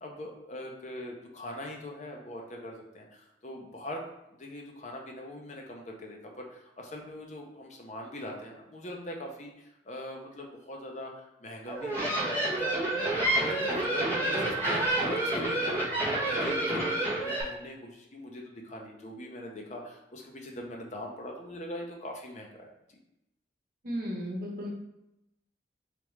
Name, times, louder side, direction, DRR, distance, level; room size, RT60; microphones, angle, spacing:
voice 1, 0.0-4.0 4.4-23.0, left 1 dB, 40° left, 1 dB, 0.6 m, -42 dB
sound 1, 11.7-17.4, right 1 dB, 10° left, 1.2 m, -28 dB
voice 2, 23.8-24.7, equal, 50° right, -2 dB, 0.9 m, -34 dB
3.7 x 3.4 x 3.1 m, 0.88 s
head